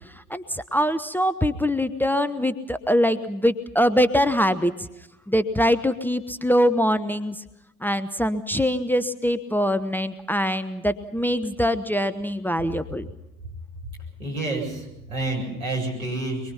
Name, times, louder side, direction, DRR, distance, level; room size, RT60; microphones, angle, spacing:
voice 1, 0.3-4.9 5.3-7.4 7.8-13.1, equal, 5° left, 10 dB, 0.9 m, -23 dB
voice 2, 14.2-16.5, right 2 dB, 85° right, -1 dB, 7.6 m, -29 dB
24.0 x 23.0 x 5.8 m, 0.92 s
figure-of-eight pair, 70°, 42 cm